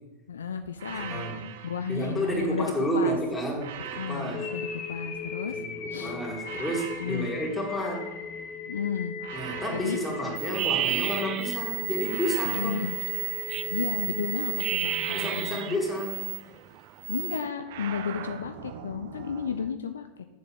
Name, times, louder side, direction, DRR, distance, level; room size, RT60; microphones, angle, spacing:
voice 1, 0.3-1.3 1.6-3.2 3.9-5.6 5.9-6.1 7.0-7.4 8.7-9.1 9.7-10.0 12.4-13.0 13.7-15.8 17.1-20.3, left 7 dB, 70° left, 9 dB, 0.6 m, -33 dB
sound 1, 0.8-2.9 3.6-5.7 6.4-8.6 9.2-11.4 12.0-14.2 14.8-17.0 17.7-19.7, right 9 dB, 55° right, 0.9 m, -43 dB
voice 2, 0.9-1.5 1.9-4.4 5.4-8.1 9.3-12.8 15.1-16.3, equal, 10° left, -2 dB, 3.0 m, -31 dB
sound 2, 4.3-16.4, left 5 dB, 30° left, 1.1 m, -39 dB
sound 3, 10.4-16.4 16.8-17.4, right 15 dB, 35° right, 0.4 m, -31 dB
8.4 x 7.2 x 6.3 m, 1.1 s
figure-of-eight pair, 90°, 0 cm